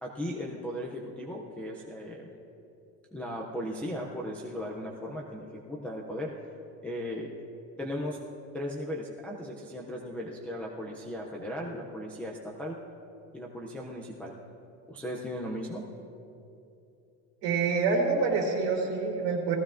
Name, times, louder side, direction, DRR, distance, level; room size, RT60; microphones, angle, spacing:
voice 1, 0.0-2.3 3.1-6.3 6.8-7.3 7.8-8.2 8.5-12.8 13.3-14.3 14.9-15.8, equal, 5° left, -4 dB, 0.3 m, -37 dB
voice 2, 17.4-19.5, right 4 dB, 55° right, -2 dB, 3.5 m, -26 dB
18.5 x 15.0 x 2.5 m, 2.8 s
cardioid pair, 175°, 39 cm